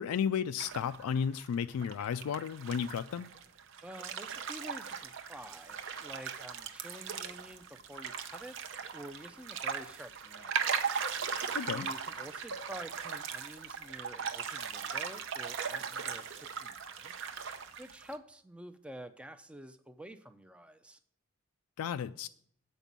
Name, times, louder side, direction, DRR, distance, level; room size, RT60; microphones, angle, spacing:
voice 1, 0.0-3.3 11.5-11.9 21.8-22.3, left 7 dB, 90° left, 0.3 m, -33 dB
sound 1, 0.6-1.5 1.8-18.2, right 6 dB, 60° right, 0.7 m, -38 dB
voice 2, 3.8-8.6 8.9-10.7 11.7-17.2 17.8-21.0, equal, 5° right, 0.4 m, -49 dB
8.2 x 5.3 x 7.3 m
head